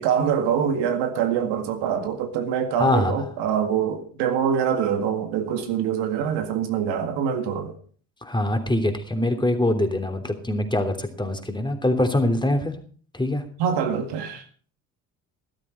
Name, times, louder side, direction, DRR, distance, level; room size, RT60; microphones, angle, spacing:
voice 1, 0.0-7.7 13.6-14.4, right 8 dB, 65° right, 2.0 m, -24 dB
voice 2, 2.8-3.2 8.2-12.7 13.1-13.4, left 1 dB, 10° left, 3.1 m, -23 dB
15.5 x 12.5 x 4.5 m
hypercardioid pair, 55°, 44 cm